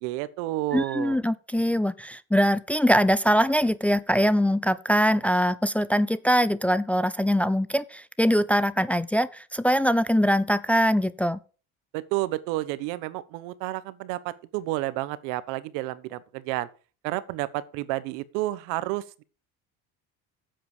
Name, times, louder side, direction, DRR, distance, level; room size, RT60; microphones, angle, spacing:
voice 1, 0.0-1.2 11.9-16.7 17.0-19.2, right 17 dB, 85° right, 1.1 m, -30 dB
voice 2, 0.7-11.4, equal, 5° left, 0.4 m, -23 dB
10.0 x 7.7 x 4.8 m
cardioid pair, 135°, 30 cm